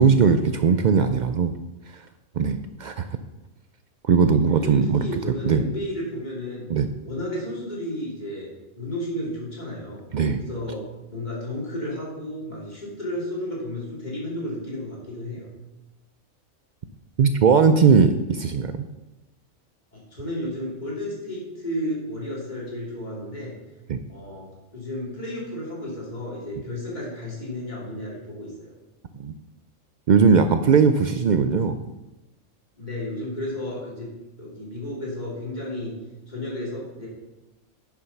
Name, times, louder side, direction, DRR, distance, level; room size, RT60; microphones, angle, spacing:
voice 1, 0.0-1.5 2.4-3.1 4.0-5.1 5.5-5.6 6.7-6.9 10.1-10.4 17.2-18.9 23.9-24.0 29.2-29.3 30.1-31.8, right 6 dB, 75° right, 8 dB, 0.4 m, -19 dB
voice 2, 4.4-6.7 7.0-10.0 10.4-15.5 19.9-23.5 24.1-28.7 32.8-34.1 34.4-36.0 36.3-37.1, left 1 dB, 35° left, -5 dB, 3.3 m, -33 dB
9.6 x 6.3 x 5.9 m, 1.0 s
omnidirectional pair, 1.4 m